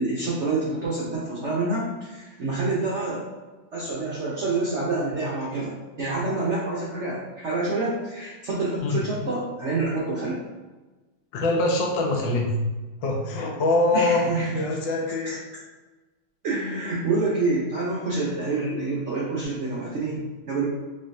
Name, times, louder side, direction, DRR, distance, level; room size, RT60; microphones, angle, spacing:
voice 1, 0.0-3.2 3.7-10.4 13.9-14.8 15.2-15.4 16.4-20.6, right 3 dB, 65° right, -6 dB, 0.7 m, -27 dB
voice 2, 11.3-12.6 13.0-14.2 14.5-15.3, left 2 dB, 75° left, 1 dB, 1.4 m, -23 dB
4.1 x 3.2 x 2.6 m, 1.2 s
omnidirectional pair, 2.2 m